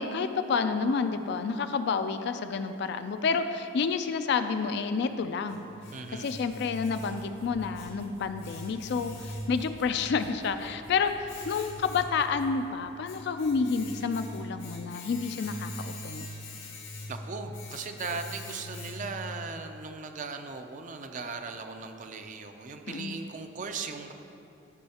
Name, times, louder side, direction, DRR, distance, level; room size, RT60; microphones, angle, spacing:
voice 1, 0.0-5.6 6.1-16.3 22.9-23.2, left 5 dB, 60° left, 9 dB, 0.3 m, -29 dB
Domestic sounds home sounds, 5.1-19.3, left 1 dB, 85° left, 1.8 m, -43 dB
voice 2, 5.9-6.4 17.1-24.1, right 4 dB, 40° right, 6 dB, 0.4 m, -38 dB
sound 1, 6.4-13.6, equal, 75° right, 1.3 m, -54 dB
12.0 x 5.5 x 2.9 m, 2.7 s
head